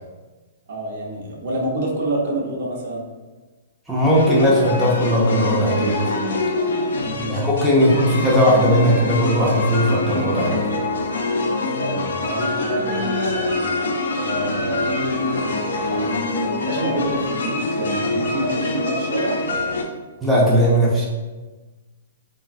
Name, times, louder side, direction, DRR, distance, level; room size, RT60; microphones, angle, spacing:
voice 1, 0.7-3.0 7.0-7.4 7.8-8.1 11.8-13.6 14.2-14.9 15.2-19.3, right 1 dB, 55° right, -1 dB, 0.6 m, -28 dB
voice 2, 3.9-6.1 7.3-10.6 20.2-21.1, equal, ahead, -7 dB, 0.4 m, -18 dB
sound 1, 4.1-19.8, left 2 dB, 85° left, 0.4 m, -24 dB
3.2 x 2.1 x 2.4 m, 1.2 s
hypercardioid pair, 160°, 0 cm